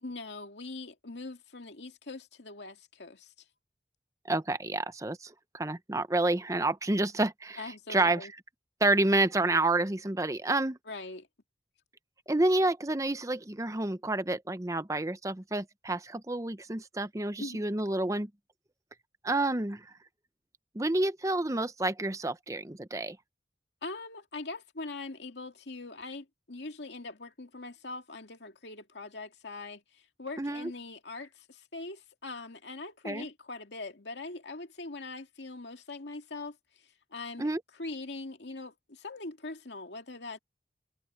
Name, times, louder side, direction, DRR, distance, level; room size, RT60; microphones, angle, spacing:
voice 1, 0.0-3.3 7.6-8.3 10.9-11.3 17.4-17.7 23.8-40.4, left 3 dB, 85° left, 2.2 m, -42 dB
voice 2, 4.3-7.6 7.9-8.3 8.8-10.8 12.3-18.3 19.2-19.8 20.7-23.2 30.4-30.7 33.0-33.3 37.4-37.6, right 2 dB, 20° right, 0.8 m, -29 dB
head